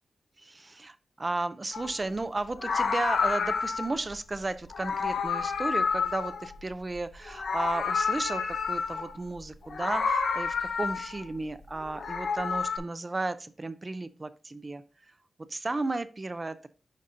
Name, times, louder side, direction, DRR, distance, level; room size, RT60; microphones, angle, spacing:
voice 1, 0.4-14.8 15.5-16.7, right 2 dB, 25° right, 12 dB, 0.4 m, -34 dB
Meow, 1.7-2.0 2.5-4.0 4.7-7.0 7.3-9.2 9.7-11.3 11.8-12.8, left 5 dB, 80° left, 0.9 m, -29 dB
10.5 x 4.1 x 2.5 m, 0.35 s
wide cardioid pair, 180°, 0 cm